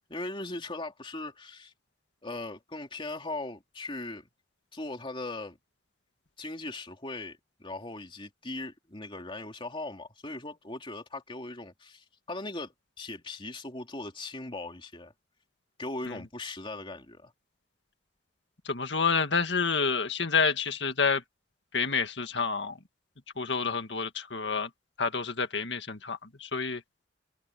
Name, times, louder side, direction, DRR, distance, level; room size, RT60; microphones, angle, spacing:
voice 1, 0.1-1.7 2.2-4.2 4.7-5.6 6.4-15.1 15.8-17.3, left 2 dB, 30° left, 3.0 m, -39 dB
voice 2, 18.6-21.2 21.7-22.8 23.4-24.7 25.0-26.8, left 5 dB, 75° left, 2.0 m, -28 dB
head